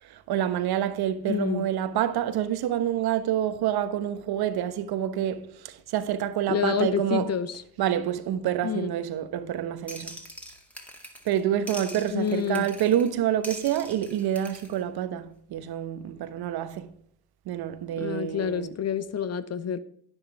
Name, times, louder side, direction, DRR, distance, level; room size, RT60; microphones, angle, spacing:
voice 1, 0.0-7.3 7.8-10.1 11.2-16.9 17.5-18.8, right 10 dB, 55° right, 1.2 m, -27 dB
voice 2, 1.3-1.6 6.5-7.6 8.6-8.9 12.1-12.7 18.0-19.8, left 8 dB, 35° left, 0.8 m, -28 dB
sound 1, 9.9-11.4 11.7-13.1 13.4-14.8, equal, 5° left, 2.1 m, -42 dB
10.5 x 10.0 x 3.4 m
hypercardioid pair, 75°, 46 cm